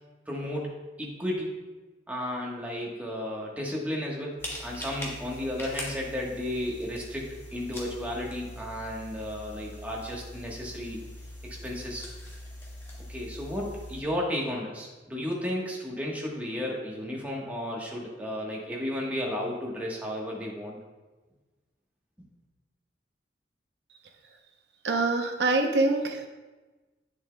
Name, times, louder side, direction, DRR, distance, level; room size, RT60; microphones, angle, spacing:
voice 1, 0.3-1.5 2.1-11.0 11.6-12.1 13.1-20.8, left 1 dB, 10° right, -3 dB, 1.2 m, -33 dB
sound 1, 4.4-14.0, left 1 dB, 15° left, 1.2 m, -42 dB
voice 2, 24.8-26.3, right 2 dB, 70° right, 5 dB, 0.8 m, -25 dB
9.0 x 7.0 x 2.2 m, 1.2 s
head